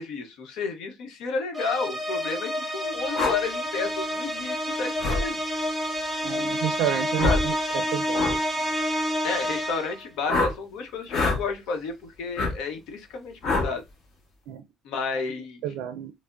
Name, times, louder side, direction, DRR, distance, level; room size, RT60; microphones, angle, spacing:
voice 1, 0.0-5.4 7.2-7.4 9.2-13.8 14.8-15.6, left 5 dB, 75° left, 0.9 m, -31 dB
sound 1, 1.5-10.1, equal, ahead, 0.6 m, -29 dB
sound 2, 3.1-3.4 5.0-5.2 7.2-7.5 8.1-8.4 10.3-10.5 11.1-11.4 12.4-12.5 13.4-13.7, left 3 dB, 50° left, 1.1 m, -24 dB
voice 2, 6.2-8.6 14.5-14.6 15.6-16.1, right 11 dB, 80° right, 0.4 m, -31 dB
4.8 x 2.1 x 2.5 m
cardioid pair, 170°, 0 cm